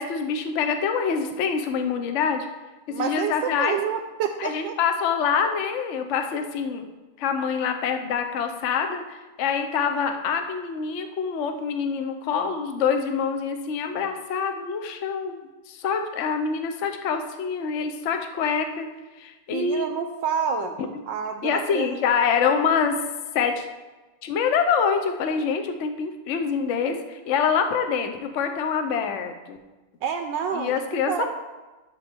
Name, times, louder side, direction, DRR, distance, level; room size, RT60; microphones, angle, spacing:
voice 1, 0.0-2.5 3.0-3.8 4.4-6.9 7.2-15.4 15.7-18.9 19.2-19.9 21.4-23.0 23.3-23.7 24.2-29.6 30.5-31.2, left 6 dB, 80° left, 6 dB, 0.6 m, -25 dB
voice 2, 2.9-4.8 19.5-20.7 21.1-22.0 30.0-30.8 31.1-31.3, right 7 dB, 75° right, 6 dB, 1.1 m, -28 dB
11.5 x 7.0 x 3.5 m, 1.2 s
omnidirectional pair, 2.3 m